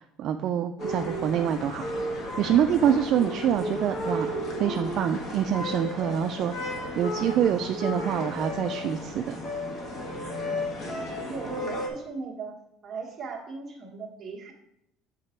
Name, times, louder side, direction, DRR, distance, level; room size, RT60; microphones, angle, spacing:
voice 1, 0.2-1.8 2.4-9.4, right 9 dB, 40° right, 7 dB, 0.3 m, -26 dB
sound 1, 0.8-11.9, left 1 dB, 40° left, 1.3 m, -33 dB
voice 2, 11.3-12.6 12.8-14.5, right 4 dB, 25° right, -2 dB, 1.4 m, -37 dB
8.2 x 4.0 x 4.4 m, 0.78 s
cardioid pair, 170°, 0 cm